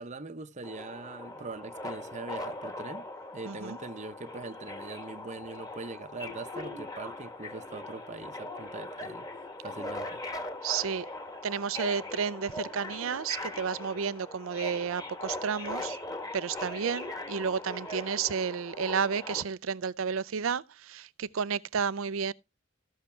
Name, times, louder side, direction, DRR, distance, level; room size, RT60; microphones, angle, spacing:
voice 1, 0.0-3.0 3.3-9.3 9.6-10.2, right 3 dB, 35° right, 0.7 m, -42 dB
Subway metro underground, 0.6-19.4, left 2 dB, 20° left, 1.4 m, -40 dB
voice 2, 3.5-3.8 10.6-11.1 11.4-16.0 16.3-22.3, right 6 dB, 85° right, 0.5 m, -31 dB
15.0 x 6.5 x 4.3 m
head